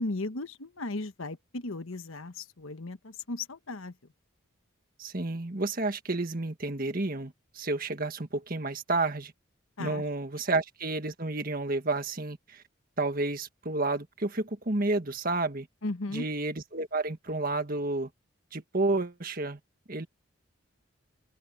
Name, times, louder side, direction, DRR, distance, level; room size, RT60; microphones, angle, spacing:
voice 1, 0.0-3.9 9.8-10.0 15.8-16.3, left 2 dB, 85° left, 1.2 m, -36 dB
voice 2, 5.0-9.3 9.8-12.6 13.0-15.7 16.1-18.1 18.5-19.6 19.9-20.1, right 2 dB, 45° right, 1.7 m, -30 dB
open air
head